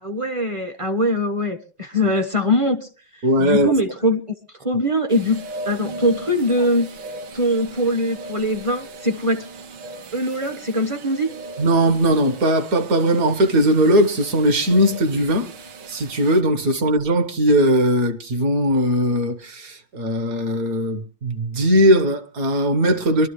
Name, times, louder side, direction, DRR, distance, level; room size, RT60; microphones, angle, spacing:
voice 1, 0.0-4.2 4.6-6.9 7.3-9.4 10.1-11.3, equal, 25° right, 0.6 m, -22 dB
voice 2, 3.2-3.7 11.6-15.5 15.9-23.3, equal, 50° right, 1.5 m, -19 dB
sound 1, 5.1-16.4, right 2 dB, 65° right, 1.6 m, -38 dB
23.0 x 12.5 x 3.1 m
omnidirectional pair, 2.2 m